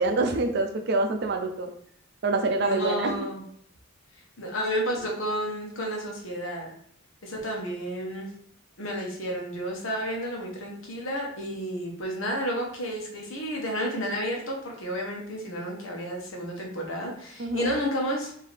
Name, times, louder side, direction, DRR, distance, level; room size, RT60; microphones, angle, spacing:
voice 1, 0.0-1.7 2.2-3.3 17.4-17.7, right 3 dB, 55° right, 5 dB, 0.5 m, -26 dB
voice 2, 2.6-3.4 4.4-6.7 7.2-8.3 8.8-18.3, equal, 70° left, 0 dB, 1.1 m, -31 dB
4.5 x 2.8 x 3.3 m, 0.64 s
head